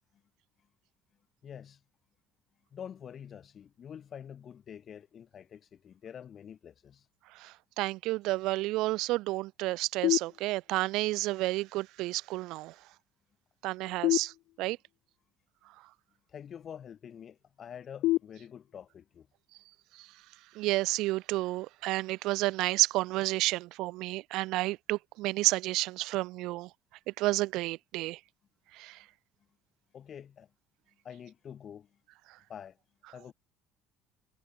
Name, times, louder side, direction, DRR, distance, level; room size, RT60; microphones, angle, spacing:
voice 1, 1.4-1.8 2.7-7.1 16.3-19.3 29.9-30.5 31.0-31.9 32.5-32.8 33.1-33.3, left 8 dB, 50° left, 3.7 m, -47 dB
voice 2, 7.4-12.7 13.6-14.3 14.6-14.8 20.5-26.7 27.2-28.2 28.8-29.0, right 19 dB, 70° right, 1.5 m, -30 dB
sound 1, 10.0-11.0 14.0-15.0 18.0-19.0, left 18 dB, 70° left, 0.6 m, -31 dB
hypercardioid pair, 70°, 0 cm